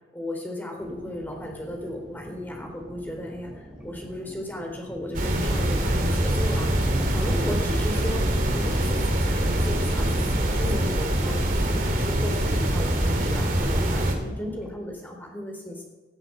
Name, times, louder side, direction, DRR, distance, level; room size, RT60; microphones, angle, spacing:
voice 1, 0.1-8.2 8.5-15.8, left 1 dB, 10° left, 1 dB, 3.8 m, -35 dB
sound 1, 0.8-14.7, equal, 5° right, 4.4 m, -44 dB
sound 2, 5.1-14.1, right 1 dB, 50° right, 2.6 m, -24 dB
17.5 x 8.2 x 8.6 m, 1.2 s
head